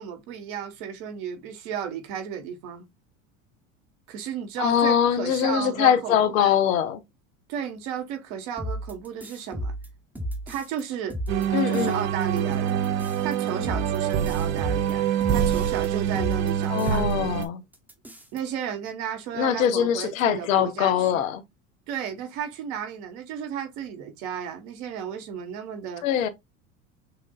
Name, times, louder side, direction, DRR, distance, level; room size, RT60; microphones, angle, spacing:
voice 1, 0.0-2.9 4.1-6.6 7.5-9.7 10.5-11.2 11.5-12.8 13.2-17.0 18.3-21.2 21.9-26.0, right 8 dB, 65° right, 1.4 m, -34 dB
voice 2, 4.6-7.0 11.5-12.1 16.7-17.6 19.3-21.4 26.0-26.3, left 9 dB, 80° left, 0.9 m, -23 dB
sound 1, 8.6-10.8 11.1-11.9 12.2-15.9 16.1-17.1 17.4-17.5 17.7-18.4, equal, 5° right, 0.9 m, -34 dB
sound 2, 11.3-17.5, right 9 dB, 40° right, 0.6 m, -25 dB
6.0 x 2.5 x 2.4 m
hypercardioid pair, 90°, 40 cm